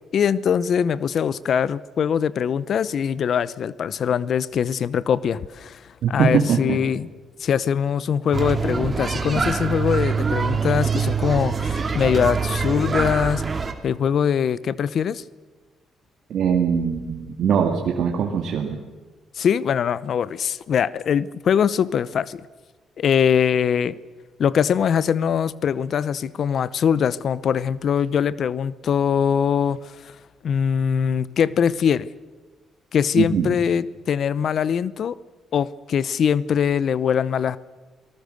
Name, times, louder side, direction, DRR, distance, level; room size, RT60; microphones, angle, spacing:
voice 1, 0.1-5.8 6.1-7.1 7.4-13.4 13.8-15.2 19.4-22.4 23.0-24.0 24.4-29.8 30.0-30.1 30.4-32.1 32.9-35.2 35.5-37.6, left 7 dB, 60° left, 19 dB, 0.7 m, -22 dB
voice 2, 6.0-6.8 16.3-18.8 33.2-33.5, right 7 dB, 70° right, 2 dB, 2.1 m, -21 dB
sound 1, 8.3-13.7, right 5 dB, 30° right, 2.4 m, -24 dB
28.0 x 19.0 x 6.6 m, 1.3 s
cardioid pair, 90°, 0 cm